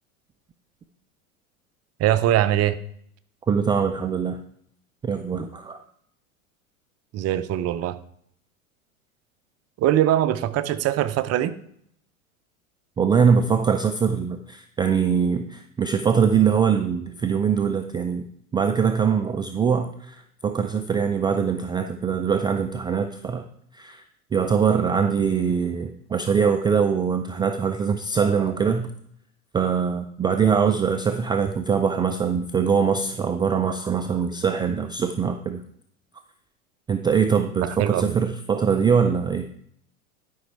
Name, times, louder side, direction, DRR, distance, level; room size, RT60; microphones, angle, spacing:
voice 1, 2.0-2.8 7.1-8.0 9.8-11.5 37.6-38.2, right 12 dB, 35° right, 12 dB, 0.7 m, -22 dB
voice 2, 3.5-4.4 5.0-5.8 13.0-18.3 18.5-23.5 23.7-24.0 24.3-28.9 29.5-35.6 36.9-39.5, right 6 dB, 10° right, 6 dB, 0.3 m, -22 dB
11.0 x 5.5 x 4.7 m, 0.66 s
hypercardioid pair, 90°, 43 cm